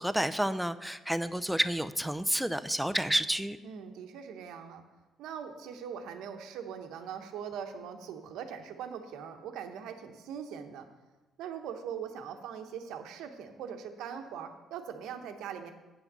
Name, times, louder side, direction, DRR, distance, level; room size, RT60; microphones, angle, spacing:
voice 1, 0.0-3.6, equal, 5° right, 12 dB, 0.6 m, -30 dB
voice 2, 3.6-4.8 5.2-10.9 11.4-15.7, right 7 dB, 75° right, 6 dB, 1.0 m, -41 dB
7.9 x 5.9 x 6.8 m, 1.2 s
hypercardioid pair, 60°, 0 cm